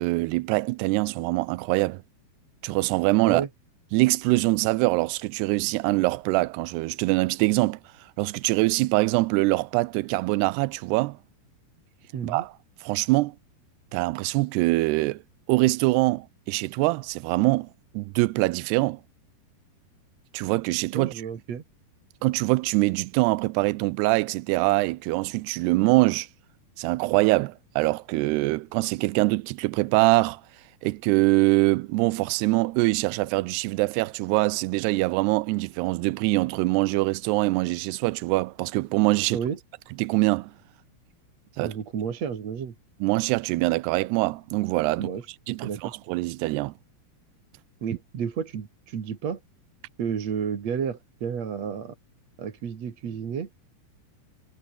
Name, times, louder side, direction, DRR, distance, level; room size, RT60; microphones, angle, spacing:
voice 1, 0.0-2.0 2.6-3.4 3.9-7.8 8.2-11.2 12.2-12.5 12.8-13.4 13.9-15.2 15.5-17.7 17.9-19.0 20.3-21.1 22.2-26.3 26.8-30.4 30.8-39.4 40.0-40.5 41.6-41.7 43.0-45.1 45.5-46.7, right 22 dB, 90° right, 2.7 m, -24 dB
voice 2, 12.1-12.4 20.9-21.6 39.3-39.6 41.6-42.7 45.0-45.2 45.6-45.9 47.8-49.4 50.0-51.9 52.4-53.5, right 7 dB, 45° right, 3.2 m, -31 dB
omnidirectional pair, 4.6 m